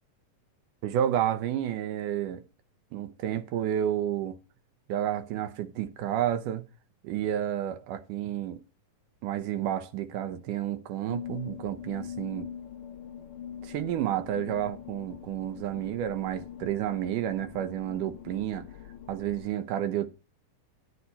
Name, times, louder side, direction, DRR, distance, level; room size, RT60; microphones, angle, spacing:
voice 1, 0.8-2.4 2.9-4.4 4.9-6.6 7.0-8.6 9.2-12.5 13.6-18.7 19.1-20.1, right 11 dB, 80° right, 2.4 m, -30 dB
sound 1, 11.1-19.5, left 9 dB, 60° left, 1.5 m, -43 dB
10.0 x 9.3 x 4.1 m
omnidirectional pair, 3.6 m